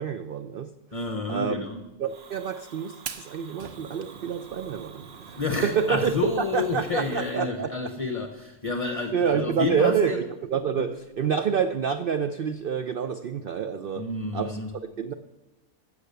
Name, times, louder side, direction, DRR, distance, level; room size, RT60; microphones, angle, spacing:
voice 1, 0.0-0.7 1.3-1.6 2.0-6.1 6.5-7.7 9.1-14.1 14.3-14.6 15.0-15.1, right 7 dB, 70° right, 10 dB, 0.5 m, -27 dB
voice 2, 0.9-1.9 5.3-10.2 10.7-10.9 13.9-14.8, left 3 dB, 35° left, 6 dB, 0.6 m, -30 dB
Fire, 2.1-7.4, right 6 dB, 50° right, 0.9 m, -43 dB
15.0 x 6.8 x 6.8 m, 1.0 s
omnidirectional pair, 1.5 m